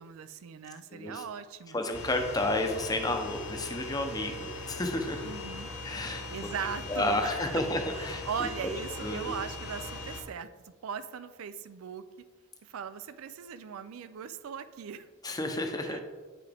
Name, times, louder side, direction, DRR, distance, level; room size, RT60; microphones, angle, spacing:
voice 1, 0.0-1.8 5.2-5.7 6.1-7.6 7.9-12.0 12.6-15.1 15.8-16.0, right 7 dB, 70° right, 13 dB, 0.4 m, -39 dB
voice 2, 0.9-1.2 1.7-5.3 5.8-6.2 6.9-8.5 9.0-9.3 15.2-16.0, left 2 dB, 15° left, 5 dB, 0.7 m, -31 dB
sound 1, 1.9-10.2, left 2 dB, 90° left, 2.0 m, -40 dB
8.9 x 5.9 x 3.4 m, 1.4 s
head